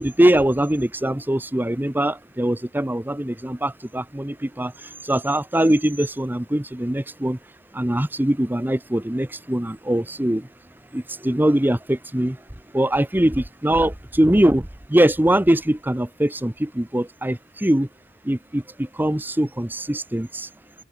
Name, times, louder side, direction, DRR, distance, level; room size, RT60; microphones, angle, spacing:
voice 1, 0.0-4.7 5.0-7.4 7.7-10.5 10.9-12.4 12.7-17.9 18.2-20.5, right 1 dB, 10° right, 0.9 m, -22 dB
open air
head